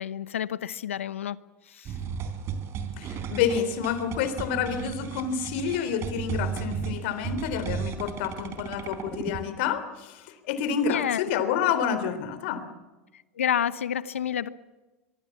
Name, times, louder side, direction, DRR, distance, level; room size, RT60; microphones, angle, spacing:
voice 1, 0.0-1.4 1.7-1.9 10.8-11.2 13.4-14.5, left 9 dB, 90° left, 16 dB, 1.0 m, -29 dB
sound 1, 1.8-9.4, right 7 dB, 40° right, 3.7 m, -34 dB
voice 2, 3.0-12.7, left 7 dB, 65° left, 11 dB, 3.5 m, -29 dB
24.0 x 23.5 x 7.3 m, 1.2 s
hypercardioid pair, 100°, 7 cm